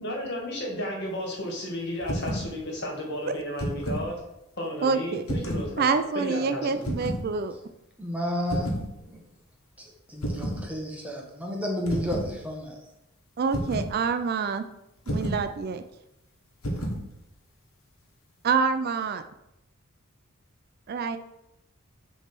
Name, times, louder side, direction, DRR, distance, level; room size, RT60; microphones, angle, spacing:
voice 1, 0.0-4.2 4.6-5.9 6.1-6.8, left 1 dB, 55° left, -1 dB, 1.8 m, -33 dB
sound 1, 2.0-2.5 3.4-4.1 5.2-5.7 6.8-7.2 8.5-8.9 10.2-10.6 11.9-12.3 13.5-13.9 15.1-15.5 16.6-17.0, equal, 90° left, 1.4 m, -30 dB
voice 2, 4.8-5.2 5.8-7.6 13.4-14.6 15.1-15.8 18.4-19.2 20.9-21.2, right 5 dB, 45° right, 9 dB, 0.3 m, -26 dB
voice 3, 8.0-8.7 9.1-9.2 9.8-12.8, left 1 dB, 5° right, -1 dB, 1.0 m, -32 dB
6.3 x 3.2 x 5.9 m, 0.87 s
head